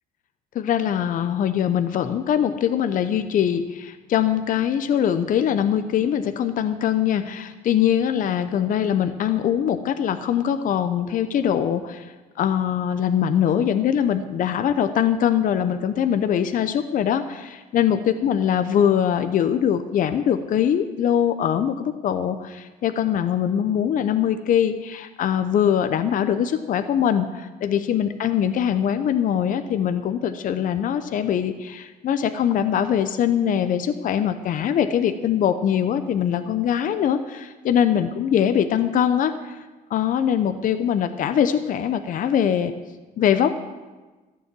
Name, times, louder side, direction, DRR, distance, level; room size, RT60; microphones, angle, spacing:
voice 1, 0.5-39.6 39.9-42.7 43.2-43.5, left 9 dB, 55° left, 9 dB, 0.7 m, -22 dB
14.0 x 7.1 x 7.5 m, 1.3 s
cardioid pair, 110°, 17 cm